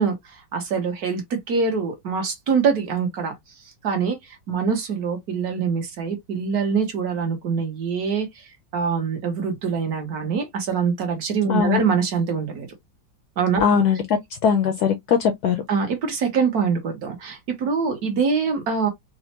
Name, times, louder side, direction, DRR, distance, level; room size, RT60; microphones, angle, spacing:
voice 1, 0.0-3.3 3.6-12.7 13.4-13.6 15.7-18.9, right 5 dB, 60° right, 1.2 m, -24 dB
voice 2, 11.5-11.8 13.6-15.6, left 7 dB, 75° left, 0.9 m, -20 dB
4.1 x 2.1 x 2.8 m
omnidirectional pair, 2.1 m